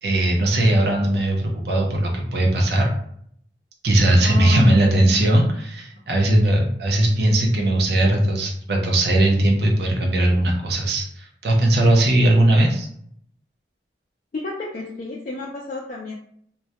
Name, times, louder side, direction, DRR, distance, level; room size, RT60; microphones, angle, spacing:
voice 1, 0.0-2.9 3.8-12.9, right 1 dB, 65° right, 1 dB, 0.4 m, -19 dB
voice 2, 4.2-5.3 14.3-16.1, left 2 dB, 45° left, -4 dB, 0.3 m, -29 dB
2.1 x 2.1 x 2.7 m, 0.66 s
head